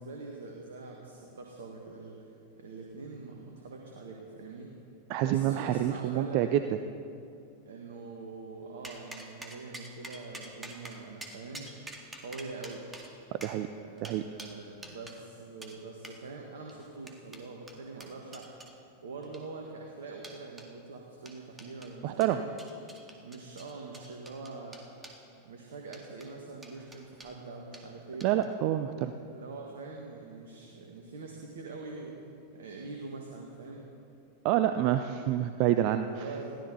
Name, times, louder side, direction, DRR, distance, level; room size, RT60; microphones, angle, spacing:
voice 1, 0.0-2.2 2.6-4.7 5.2-6.6 7.6-11.7 12.2-12.8 13.7-18.5 19.0-22.5 23.2-24.8 25.4-28.3 29.2-32.2 32.5-33.9 36.0-36.6, right 3 dB, 60° right, 0 dB, 1.8 m, -44 dB
voice 2, 5.1-6.6 13.4-13.7 14.0-14.2 22.0-22.4 28.2-29.1 34.4-36.1, right 12 dB, 45° right, 10 dB, 0.6 m, -27 dB
sound 1, 8.8-15.2 15.6-15.8 16.0-16.2 16.7-18.7 19.2-19.7 20.2-20.7 21.3-21.9 22.2-25.2 25.9-26.3 26.6-27.3 27.7-27.9 28.2-28.5, right 2 dB, 15° right, 2.0 m, -47 dB
21.5 x 15.5 x 4.0 m, 2.6 s
figure-of-eight pair, 90°, 0 cm